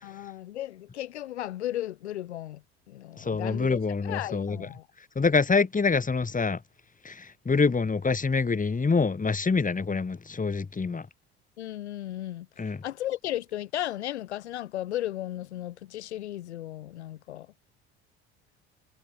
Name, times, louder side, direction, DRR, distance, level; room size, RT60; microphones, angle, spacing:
voice 1, 0.0-2.6 2.9-4.9 10.8-10.9 11.6-12.5 12.8-17.5, left 13 dB, 85° left, 5.4 m, -35 dB
voice 2, 3.2-4.7 5.2-6.6 7.0-11.1 12.6-12.8, left 4 dB, 25° left, 5.4 m, -26 dB
hypercardioid pair, 60°, 33 cm